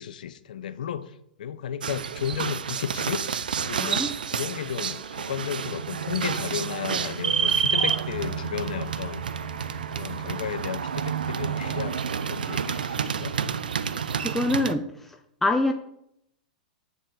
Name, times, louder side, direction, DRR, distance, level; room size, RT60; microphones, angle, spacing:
voice 1, 0.0-3.2 3.6-9.2 9.9-13.4, left 9 dB, 70° left, 14 dB, 0.5 m, -34 dB
sound 1, 1.8-14.7, right 7 dB, 80° right, 0.4 m, -29 dB
voice 2, 3.8-4.1 14.2-15.7, left 2 dB, 5° left, 5 dB, 0.5 m, -26 dB
sound 2, 4.5-13.5, right 4 dB, 55° right, 1.6 m, -50 dB
Bass guitar, 8.1-14.3, right 2 dB, 35° right, 2.4 m, -44 dB
7.3 x 6.7 x 3.7 m, 0.76 s
hypercardioid pair, 105°, 5 cm